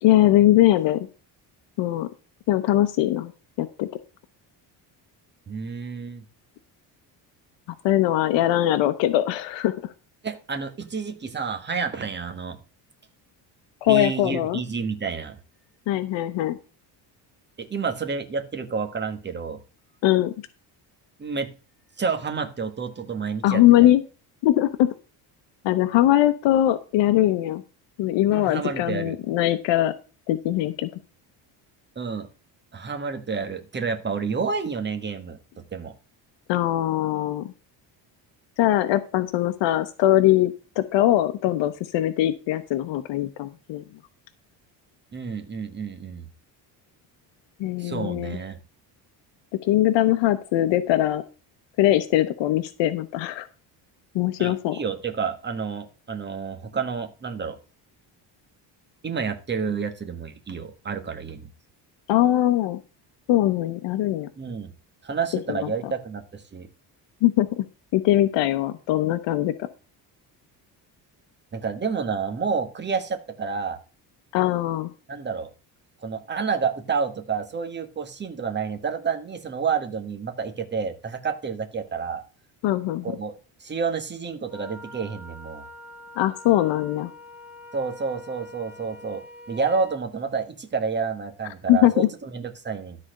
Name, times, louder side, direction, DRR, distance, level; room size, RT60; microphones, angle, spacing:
voice 1, 0.0-1.1 1.8-2.1 2.5-3.3 3.6-3.9 7.8-9.9 13.8-14.6 15.9-16.6 20.0-20.3 23.4-24.0 24.4-24.9 25.6-27.6 28.0-29.9 30.3-30.9 36.5-37.5 38.6-43.8 47.6-48.4 49.6-51.2 51.8-53.5 54.1-54.8 62.1-62.8 63.3-64.3 65.5-65.6 67.2-67.6 67.9-69.5 74.3-74.9 82.6-83.0 86.2-87.1 91.7-92.1, left 14 dB, 80° left, 10 dB, 0.9 m, -21 dB
voice 2, 5.5-6.2 10.2-12.6 13.9-15.4 17.6-19.6 21.2-21.5 22.0-23.9 28.3-29.2 31.9-32.3 32.7-35.9 45.1-46.3 47.8-48.6 54.4-57.6 59.0-61.5 64.4-64.7 65.0-66.7 71.5-73.8 75.1-75.5 76.0-82.2 83.0-83.3 83.6-85.6 87.7-93.0, right 5 dB, 25° right, 7 dB, 1.3 m, -29 dB
Wind instrument woodwind instrument, 84.5-90.0, left 2 dB, 5° right, 1.3 m, -44 dB
12.5 x 4.3 x 6.4 m, 0.35 s
cardioid pair, 135°, 44 cm